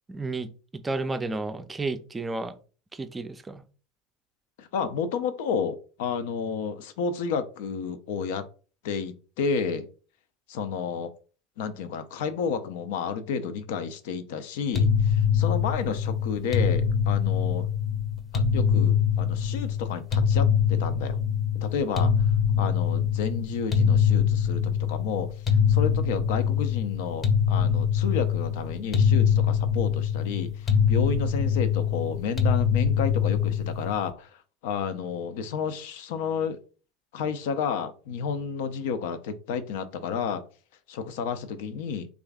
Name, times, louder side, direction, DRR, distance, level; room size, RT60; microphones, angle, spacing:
voice 1, 0.1-2.6 2.9-3.6, right 3 dB, 15° right, 10 dB, 0.4 m, -32 dB
voice 2, 4.6-8.5 8.8-9.9 10.5-11.1 11.6-17.7 18.3-21.2 21.5-22.3 22.6-36.6 37.1-40.4 40.9-42.1, left 6 dB, 70° left, 11 dB, 0.5 m, -31 dB
sound 1, 14.7-34.1, left 7 dB, 30° left, 0.7 m, -24 dB
3.1 x 2.4 x 3.5 m, 0.38 s
hypercardioid pair, 85°, 0 cm